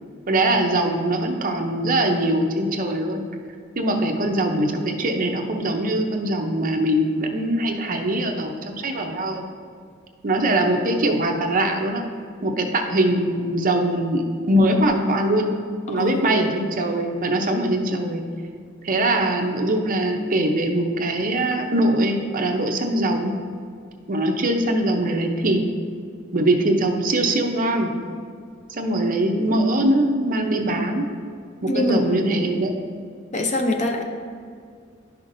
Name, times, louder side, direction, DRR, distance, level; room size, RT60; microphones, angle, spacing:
voice 1, 0.3-3.2 3.8-9.4 10.2-12.0 12.4-15.5 15.9-18.2 18.8-23.3 24.1-25.6 26.3-27.9 28.7-31.1 31.6-32.7, right 1 dB, 40° right, 3 dB, 0.6 m, -22 dB
voice 2, 16.0-16.5 31.7-32.4 33.3-34.0, left 2 dB, 35° left, 4 dB, 0.6 m, -24 dB
11.0 x 5.7 x 2.6 m, 2.2 s
head